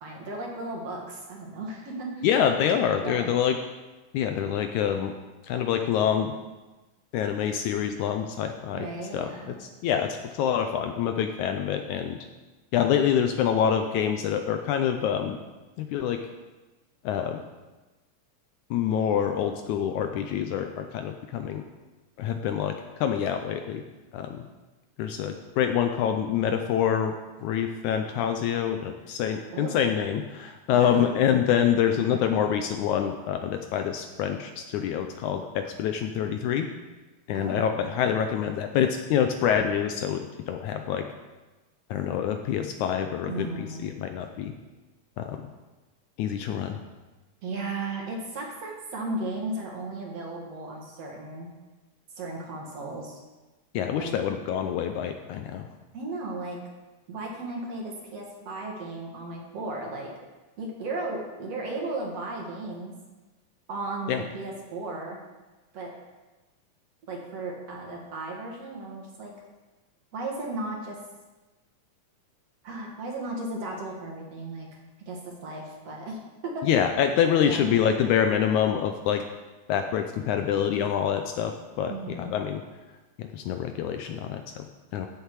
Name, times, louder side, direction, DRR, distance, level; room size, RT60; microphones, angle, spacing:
voice 1, 0.0-2.3 3.0-3.3 8.7-9.5 29.5-29.9 30.7-31.1 37.3-37.8 43.3-43.8 47.4-51.5 52.2-53.2 54.0-54.1 55.9-56.6 57.1-60.1 60.6-62.9 63.7-65.2 65.7-65.9 67.1-69.3 70.1-71.0 72.6-76.6 77.4-77.7 81.9-82.3, right 2 dB, 55° right, -1 dB, 2.5 m, -35 dB
voice 2, 2.2-3.6 4.1-5.1 5.5-6.3 7.1-8.9 9.1-12.2 12.7-15.4 15.8-16.2 17.1-17.4 18.7-21.6 22.2-23.8 24.1-24.5 25.0-27.1 27.4-36.7 37.3-41.0 41.9-44.5 45.2-45.4 46.2-46.8 53.7-55.7 64.1-64.2 76.6-79.2 79.7-82.6 83.2-84.6 84.9-85.1, left 9 dB, 75° left, 6 dB, 1.9 m, -26 dB
15.5 x 7.0 x 4.7 m, 1.2 s
omnidirectional pair, 3.8 m